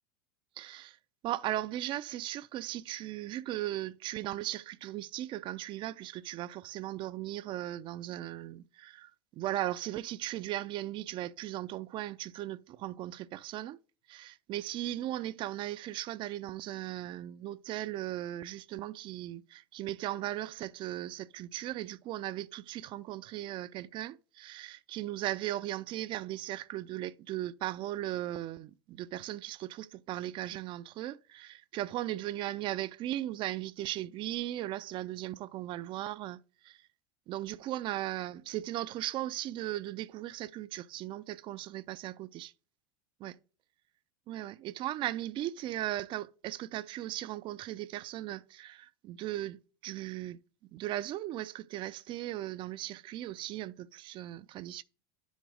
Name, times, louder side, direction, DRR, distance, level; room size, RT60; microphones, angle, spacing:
voice 1, 0.6-1.0 1.2-13.8 14.1-36.8 37.3-42.5 43.2-43.4 44.3-50.4 50.7-54.8, right 14 dB, 45° right, 0.5 m, -37 dB
10.0 x 6.4 x 3.4 m
hypercardioid pair, 90°, 12 cm